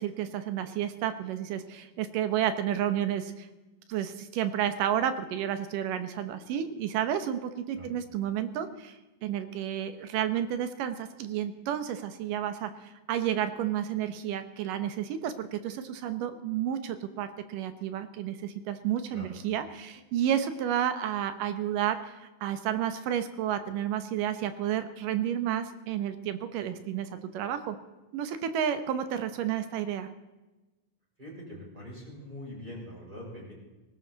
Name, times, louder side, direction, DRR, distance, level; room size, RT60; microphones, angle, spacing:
voice 1, 0.0-3.5 3.9-27.8 28.1-30.1, right 10 dB, 90° right, 10 dB, 2.7 m, -31 dB
voice 2, 31.2-33.5, equal, 15° right, -4 dB, 6.9 m, -43 dB
19.5 x 18.0 x 4.1 m, 1.1 s
omnidirectional pair, 3.7 m